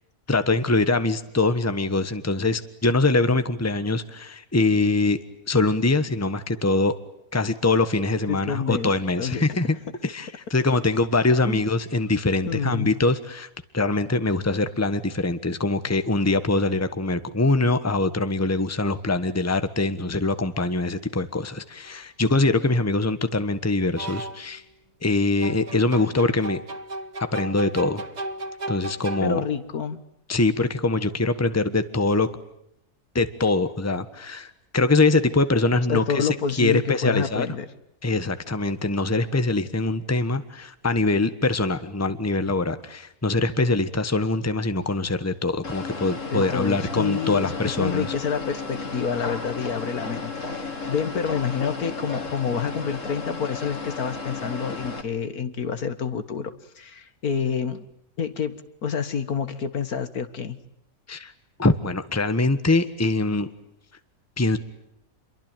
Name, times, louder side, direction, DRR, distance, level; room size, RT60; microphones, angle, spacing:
voice 1, 0.3-5.2 5.5-6.9 7.3-9.8 10.0-13.5 13.7-24.6 25.0-26.6 27.3-28.0 28.7-29.4 30.3-32.3 33.1-37.5 38.0-48.1 61.1-61.3 61.6-63.5 64.4-64.6, left 2 dB, 10° left, 11 dB, 1.3 m, -23 dB
voice 2, 8.3-8.9 9.2-9.4 11.5-11.6 12.5-12.9 29.2-30.0 35.9-37.7 46.3-57.9 58.2-60.6, left 6 dB, 75° left, 11 dB, 2.0 m, -28 dB
sound 1, 21.9-22.0 24.0-24.6 25.4-29.7, right 2 dB, 30° right, 1.2 m, -35 dB
sound 2, 45.6-55.0, left 4 dB, 55° left, 3.0 m, -33 dB
28.0 x 23.0 x 9.2 m, 0.77 s
omnidirectional pair, 1.6 m